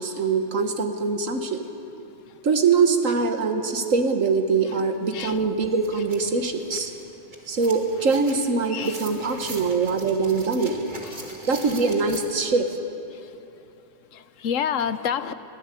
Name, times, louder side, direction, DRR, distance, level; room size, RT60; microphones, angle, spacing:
voice 1, 0.0-1.6 2.4-6.9 7.5-10.8 11.5-12.7, right 4 dB, 90° right, 7 dB, 1.8 m, -23 dB
sound 1, 4.9-5.0 5.3-12.2, right 2 dB, 35° right, 2.3 m, -42 dB
voice 2, 14.1-15.3, left 8 dB, 75° left, 13 dB, 1.2 m, -28 dB
22.0 x 16.0 x 8.4 m, 2.8 s
omnidirectional pair, 1.3 m